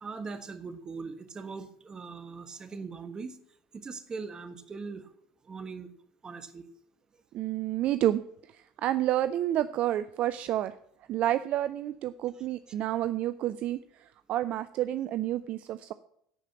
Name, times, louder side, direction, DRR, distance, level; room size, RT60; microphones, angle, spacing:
voice 1, 0.0-3.4 3.7-5.1 5.4-5.9 6.2-6.6 12.4-12.5, right 4 dB, 30° right, 10 dB, 1.3 m, -40 dB
voice 2, 7.3-8.2 8.5-10.7 11.1-15.9, right 13 dB, 55° right, 14 dB, 0.4 m, -29 dB
11.5 x 5.0 x 7.1 m, 0.70 s
hypercardioid pair, 75°, 3 cm